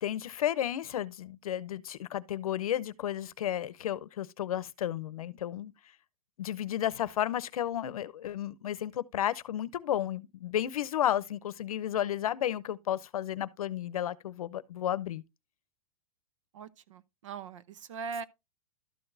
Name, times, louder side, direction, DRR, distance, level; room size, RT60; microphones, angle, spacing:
voice 1, 0.0-5.7 6.4-15.2, left 11 dB, 75° left, 0.7 m, -32 dB
voice 2, 16.5-18.2, right 5 dB, 60° right, 0.8 m, -41 dB
12.5 x 6.0 x 2.7 m
supercardioid pair, 175°, 18 cm